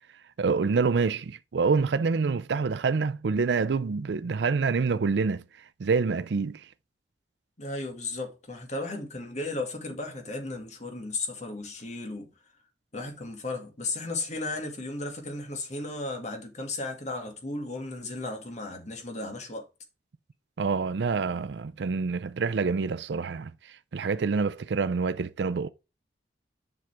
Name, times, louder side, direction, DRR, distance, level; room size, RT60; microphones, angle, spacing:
voice 1, 0.4-5.4 5.8-6.7 20.6-25.7, right 4 dB, 80° right, 0.4 m, -27 dB
voice 2, 7.6-12.3 12.9-19.7, left 2 dB, 40° left, 2.1 m, -35 dB
7.7 x 5.8 x 3.4 m
head